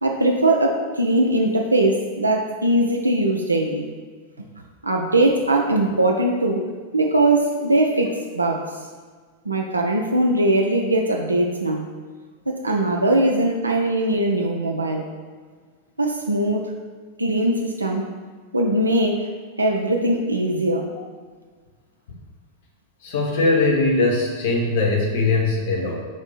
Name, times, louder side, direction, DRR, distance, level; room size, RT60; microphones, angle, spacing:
voice 1, 0.0-3.9 4.8-8.8 9.5-11.9 12.5-15.1 16.0-16.7 17.2-18.1 18.5-19.3 19.6-20.9, right 1 dB, 80° right, 1 dB, 0.3 m, -21 dB
voice 2, 23.0-25.9, left 3 dB, 50° left, -1 dB, 0.9 m, -20 dB
4.8 x 2.6 x 3.9 m, 1.5 s
figure-of-eight pair, 90°, 0 cm